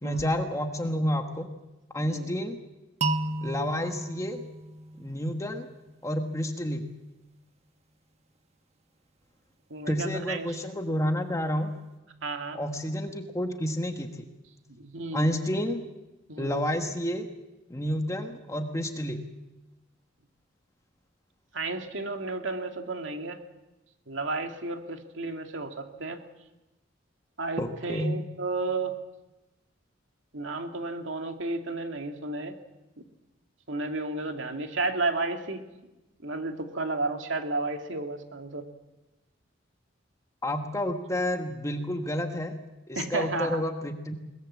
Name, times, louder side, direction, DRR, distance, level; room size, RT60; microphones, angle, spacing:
voice 1, 0.0-1.5 1.9-2.6 3.4-4.4 5.0-5.7 6.0-6.8 9.9-11.7 12.5-14.3 15.1-15.8 16.4-17.3 17.7-19.2 27.6-28.1 40.4-42.5 42.9-44.1, equal, 15° left, 5 dB, 1.4 m, -30 dB
sound 1, 3.0-5.9, right 2 dB, 35° right, 1.2 m, -33 dB
voice 2, 9.7-10.5 12.2-12.6 14.8-15.3 16.3-16.6 21.5-23.4 24.1-26.2 27.4-29.0 30.3-32.6 33.7-35.6 36.2-38.7 42.9-43.6, right 3 dB, 75° right, 4 dB, 2.3 m, -32 dB
22.0 x 20.5 x 7.4 m, 1.0 s
head